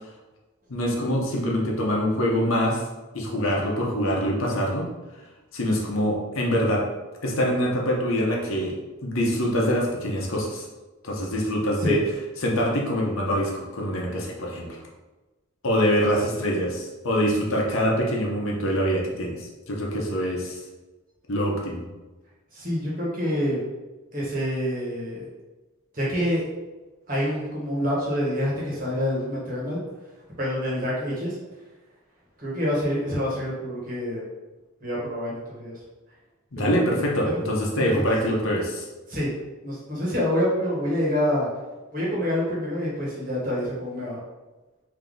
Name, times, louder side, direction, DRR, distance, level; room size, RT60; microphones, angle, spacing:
voice 1, 0.7-2.8 3.1-4.9 5.5-6.8 7.2-8.8 9.0-10.7 11.0-12.0 12.4-14.8 15.6-20.6 21.3-21.8 36.5-38.9, equal, 75° left, -2 dB, 0.9 m, -24 dB
voice 2, 22.5-23.6 24.1-25.3 25.9-26.4 27.1-29.8 30.4-31.4 32.4-34.2 34.8-35.7 36.6-37.4 37.7-38.0 39.1-39.3 39.6-41.5 41.9-44.2, equal, 40° right, -5 dB, 1.3 m, -27 dB
3.6 x 2.8 x 3.8 m, 1.1 s
head